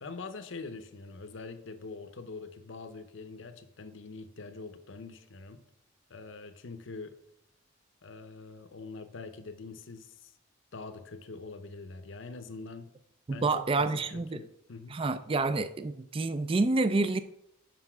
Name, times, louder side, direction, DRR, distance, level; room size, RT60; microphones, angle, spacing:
voice 1, 0.0-5.6 6.1-7.2 8.0-10.3 10.7-12.9 13.3-15.0, left 3 dB, 60° left, 0.7 m, -44 dB
voice 2, 13.3-14.4 14.9-17.2, right 3 dB, 25° right, 0.3 m, -28 dB
5.9 x 5.3 x 5.9 m
head